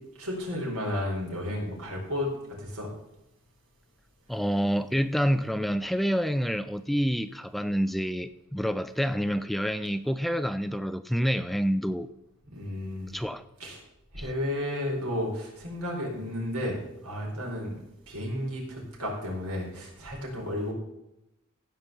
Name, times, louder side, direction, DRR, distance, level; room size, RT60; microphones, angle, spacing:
voice 1, 0.2-2.3 2.6-2.9 12.5-13.2 13.6-13.8 14.1-17.8 18.1-20.7, left 1 dB, 90° right, -2 dB, 4.6 m, -32 dB
voice 2, 4.3-12.1 13.1-13.4 14.2-14.3, equal, ahead, 12 dB, 0.3 m, -28 dB
15.0 x 5.3 x 7.1 m, 0.89 s
head